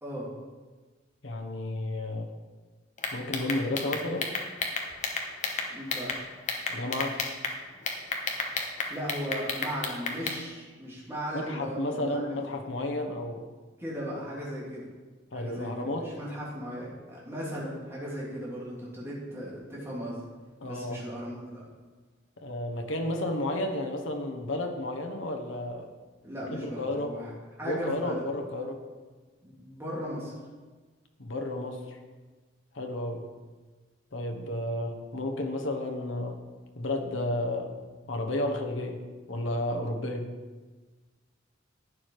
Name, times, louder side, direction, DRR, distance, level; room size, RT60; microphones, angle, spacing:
voice 1, 0.0-0.3 5.7-6.1 8.9-12.4 13.8-14.9 15.3-20.2 20.6-21.6 26.2-27.3 27.6-28.2 29.4-30.3, equal, 15° right, -7 dB, 3.0 m, -37 dB
voice 2, 1.2-2.3 3.1-4.4 6.7-7.2 11.3-13.5 15.3-16.1 20.6-21.0 22.4-25.9 26.5-27.2 27.6-28.8 31.2-32.0 32.7-33.2 34.1-36.4 36.8-37.7 38.1-39.0 39.3-40.3, left 1 dB, 75° left, 4 dB, 1.2 m, -32 dB
sound 1, 3.0-6.2 6.5-7.5 7.9-10.4, left 4 dB, 35° left, 1.2 m, -31 dB
11.0 x 9.2 x 4.9 m, 1.3 s
head